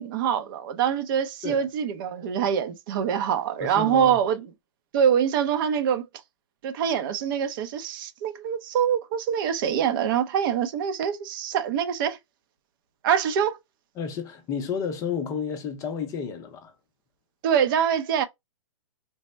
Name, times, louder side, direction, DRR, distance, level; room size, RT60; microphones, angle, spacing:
voice 1, 0.0-4.5 4.9-6.0 6.6-12.2 13.0-13.6 17.4-18.2, right 8 dB, 45° right, 0.6 m, -24 dB
voice 2, 3.6-4.2 14.0-16.7, left 6 dB, 20° left, 0.6 m, -31 dB
3.4 x 2.1 x 4.0 m
hypercardioid pair, 145°, 16 cm